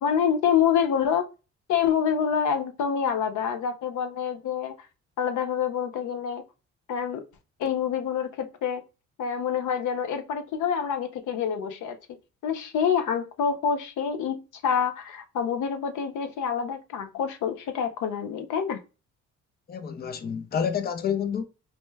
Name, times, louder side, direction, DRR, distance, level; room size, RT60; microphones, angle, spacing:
voice 1, 0.0-1.3 1.7-4.8 5.2-6.4 6.9-7.3 7.6-8.8 9.2-12.0 12.4-18.8, left 7 dB, 75° left, 0.6 m, -27 dB
voice 2, 19.7-21.4, left 7 dB, 30° left, 0.5 m, -28 dB
4.2 x 2.2 x 3.2 m
cardioid pair, 90°, 30 cm